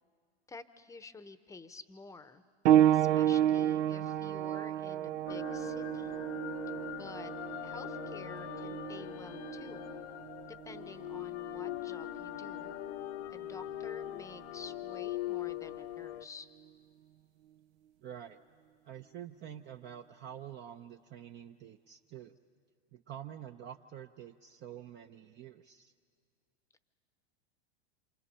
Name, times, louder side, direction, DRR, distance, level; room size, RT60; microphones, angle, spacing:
voice 1, 0.5-2.4 2.9-6.1 7.0-7.3 7.6-9.8 10.5-12.7 13.3-16.5, left 3 dB, 10° left, 12 dB, 0.8 m, -50 dB
sound 1, 2.6-12.9 13.8-13.9 14.7-14.8, right 11 dB, 85° right, 0.6 m, -31 dB
sound 2, 5.3-16.2, left 14 dB, 75° left, 1.0 m, -41 dB
voice 2, 18.0-18.4 18.8-22.4 22.9-25.9, right 10 dB, 30° right, 6 dB, 0.6 m, -47 dB
27.5 x 27.0 x 5.6 m, 2.1 s
hypercardioid pair, 120°, 34 cm